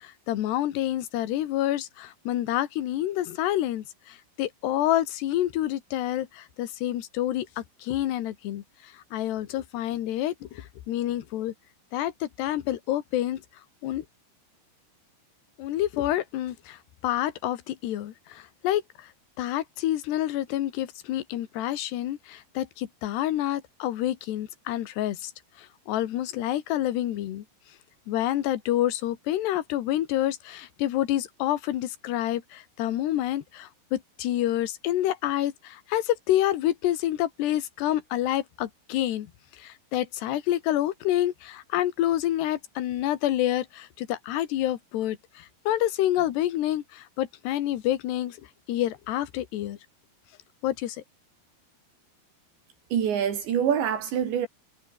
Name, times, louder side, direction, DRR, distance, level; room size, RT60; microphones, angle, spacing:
voice 1, 0.0-11.5 11.9-13.4 13.8-14.1 15.6-19.1 19.4-25.3 25.6-27.4 28.1-39.3 39.6-48.4 48.7-49.8 50.6-51.0, left 13 dB, 70° left, 3.7 m, -28 dB
voice 2, 52.9-54.5, right 8 dB, 80° right, 5.4 m, -25 dB
omnidirectional pair, 5.1 m